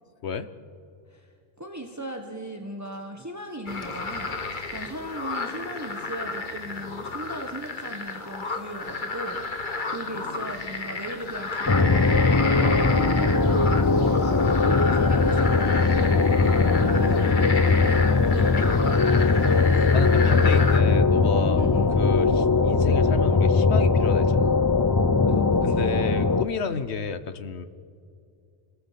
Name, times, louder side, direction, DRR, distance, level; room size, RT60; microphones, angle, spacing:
voice 1, 1.6-4.4 4.7-9.6 9.8-18.0 18.3-18.9 21.5-21.9 22.2-22.4 25.3-26.0 26.7-26.8, right 1 dB, 15° right, 3 dB, 1.4 m, -37 dB
sound 1, 3.7-20.8, left 3 dB, 50° left, 1.6 m, -32 dB
sound 2, 11.7-26.4, left 4 dB, 25° left, 0.5 m, -20 dB
voice 2, 19.9-21.6 22.0-22.3 22.6-24.7 25.6-27.7, left 5 dB, 90° left, 12 dB, 1.3 m, -31 dB
30.0 x 18.0 x 7.6 m, 2.4 s
omnidirectional pair, 1.1 m